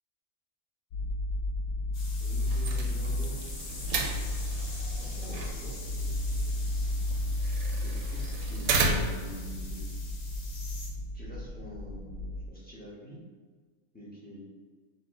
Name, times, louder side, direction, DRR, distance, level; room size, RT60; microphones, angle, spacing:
sound 1, 0.9-12.5, left 1 dB, 85° left, 1.0 m, -33 dB
sound 2, 1.9-10.9, left 3 dB, 65° left, 1.1 m, -46 dB
voice 1, 2.2-3.3 3.7-3.9 5.0-6.6 7.8-9.8 11.1-13.2 13.9-14.4, equal, 10° left, -7 dB, 0.8 m, -46 dB
sound 3, 2.4-9.4, right 3 dB, 90° right, 1.0 m, -34 dB
5.3 x 2.3 x 3.5 m, 1.5 s
omnidirectional pair, 1.4 m